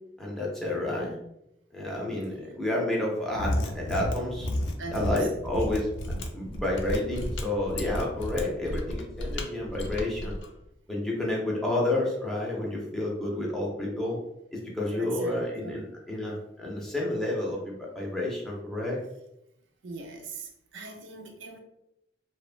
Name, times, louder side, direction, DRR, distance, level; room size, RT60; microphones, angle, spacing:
voice 1, 0.2-1.2 1.7-4.5 4.9-5.9 6.3-10.4 10.9-14.2 14.5-19.0, left 1 dB, 5° left, -4 dB, 0.5 m, -30 dB
voice 2, 2.3-2.6 4.0-4.1 4.4-4.5 4.8-5.4 14.9-15.9 19.8-21.6, right 2 dB, 85° right, 3 dB, 0.4 m, -41 dB
Mechanisms, 3.3-10.5, left 1 dB, 80° left, 0.4 m, -32 dB
2.9 x 2.1 x 2.4 m, 0.84 s
head